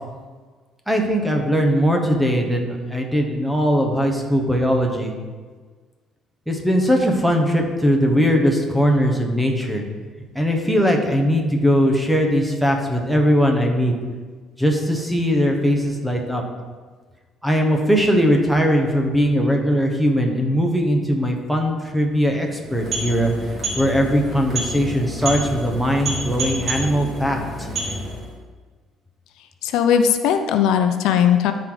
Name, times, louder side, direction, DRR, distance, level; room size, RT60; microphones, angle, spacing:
voice 1, 0.9-5.1 6.5-9.8 10.3-13.9 14.6-16.4 17.4-23.3 23.8-27.7, equal, ahead, 2 dB, 1.1 m, -20 dB
sound 1, 22.6-28.4, right 1 dB, 30° right, 2.2 m, -29 dB
voice 2, 29.6-31.5, left 8 dB, 80° left, 7 dB, 0.6 m, -18 dB
12.5 x 4.7 x 4.0 m, 1.5 s
cardioid pair, 150°, 0 cm